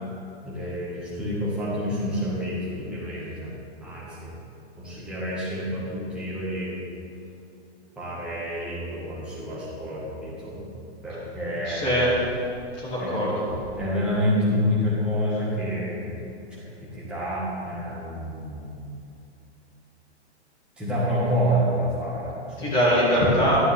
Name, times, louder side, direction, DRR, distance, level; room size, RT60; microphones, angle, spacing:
voice 1, 0.4-3.5 3.8-4.3 4.8-6.8 8.0-10.6 11.0-11.9 13.0-13.2 13.8-16.1 16.5-16.6 16.9-18.9 20.8-22.7, equal, 5° right, -10 dB, 1.9 m, -28 dB
voice 2, 11.6-12.1 12.8-13.4 22.6-23.7, equal, 25° left, -8 dB, 2.6 m, -22 dB
12.5 x 9.8 x 3.7 m, 2.7 s
hypercardioid pair, 170°, 34 cm